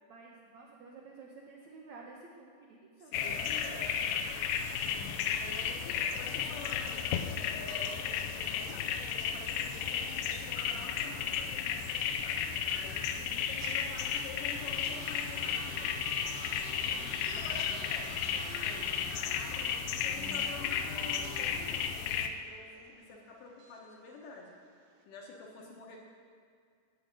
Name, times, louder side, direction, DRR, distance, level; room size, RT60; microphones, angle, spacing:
voice 1, 0.1-3.9 4.8-5.7 7.9-8.3 13.2-13.5 16.9-17.4 17.9-18.4 19.3-20.7 22.8-23.4 25.6-25.7, right 3 dB, 85° right, -2 dB, 1.6 m, -54 dB
voice 2, 3.0-3.9 5.2-7.1 7.5-12.4 12.7-13.1 13.5-16.0 16.7-17.0 17.2-18.9 19.4-22.7 23.1-24.5 25.1-26.0, left 3 dB, 65° left, -1 dB, 2.3 m, -48 dB
sound 1, 3.1-22.3, left 7 dB, 85° left, 2.1 m, -34 dB
sound 2, 11.5-25.0, right 4 dB, 70° right, 2.0 m, -50 dB
14.0 x 5.0 x 9.1 m, 2.2 s
omnidirectional pair, 4.8 m